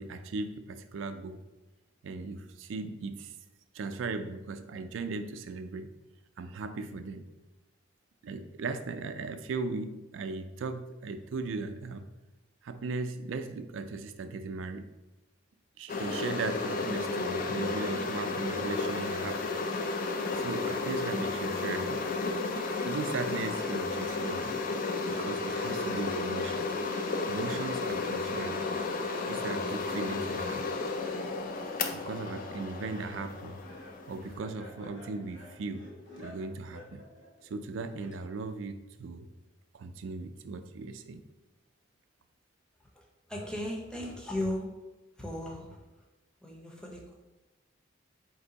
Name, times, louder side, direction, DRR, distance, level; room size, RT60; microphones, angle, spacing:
voice 1, 0.0-1.4 2.0-3.3 3.7-5.9 6.4-7.2 8.2-12.1 12.6-14.9 15.8-19.4 20.2-22.0 22.8-24.6 25.1-26.7 27.3-28.7 29.3-30.7 31.9-33.6 34.1-35.9 36.2-37.0 37.4-39.3 39.7-41.2, right 4 dB, 85° right, 9 dB, 0.4 m, -38 dB
sound 1, 15.9-34.4, left 3 dB, 45° left, 0.4 m, -33 dB
Laughter, 32.7-38.6, left 1 dB, 65° left, 0.9 m, -51 dB
voice 2, 43.3-44.7 45.2-45.8 46.4-47.1, left 1 dB, 5° left, -1 dB, 0.6 m, -36 dB
4.3 x 2.6 x 3.9 m, 1.1 s
head